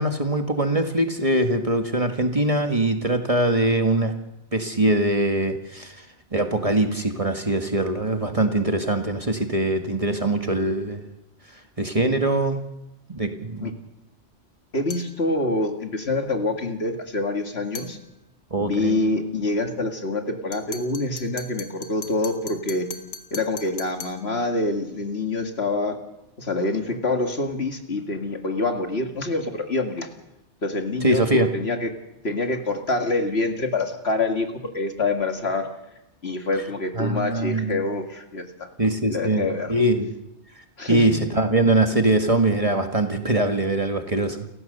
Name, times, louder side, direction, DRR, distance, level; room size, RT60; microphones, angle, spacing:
voice 1, 0.0-4.1 4.5-6.0 6.3-11.0 11.8-12.6 13.1-13.7 18.5-19.0 31.0-31.5 37.0-37.8 38.8-39.4 39.7-40.1 40.9-44.4, right 1 dB, 30° right, 5 dB, 1.7 m, -22 dB
voice 2, 14.7-18.0 18.6-22.9 23.3-26.0 26.4-30.1 30.6-31.9 32.2-35.7 36.2-38.7 39.1-39.7 40.8-41.1, left 2 dB, 60° left, 4 dB, 2.4 m, -26 dB
sound 1, 14.9-15.2 17.7-18.0 20.5-24.2, left 4 dB, 85° left, 2.0 m, -38 dB
29.5 x 15.5 x 6.7 m, 0.91 s
omnidirectional pair, 1.2 m